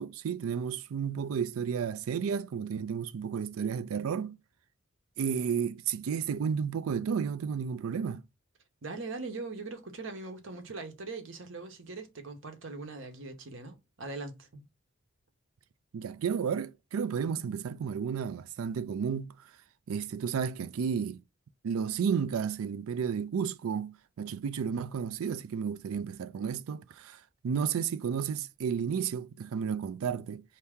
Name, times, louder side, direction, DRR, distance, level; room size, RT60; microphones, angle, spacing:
voice 1, 0.0-4.4 5.2-8.2 15.9-19.3 19.9-21.2 21.6-30.4, right 7 dB, 85° right, 0.4 m, -32 dB
voice 2, 8.8-14.6, right 3 dB, 65° right, 0.9 m, -41 dB
4.4 x 2.9 x 3.5 m
head